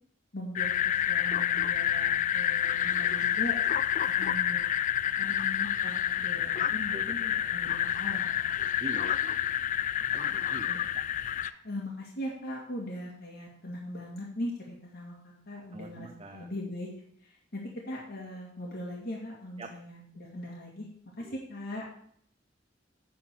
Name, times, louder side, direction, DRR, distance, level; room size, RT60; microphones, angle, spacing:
voice 1, 0.3-3.6 4.2-4.6 5.2-8.5 10.1-10.9 11.2-16.9 17.2-20.9 21.2-21.8, left 1 dB, 60° left, -3 dB, 2.0 m, -40 dB
sound 1, 0.5-11.5, left 10 dB, 40° left, 0.3 m, -28 dB
voice 2, 6.9-7.4 8.8-9.3 10.1-10.7 11.0-11.1 15.7-16.5 19.6-19.7 21.2-21.4, right 2 dB, 30° right, 6 dB, 0.6 m, -44 dB
9.9 x 4.2 x 7.6 m, 0.64 s
head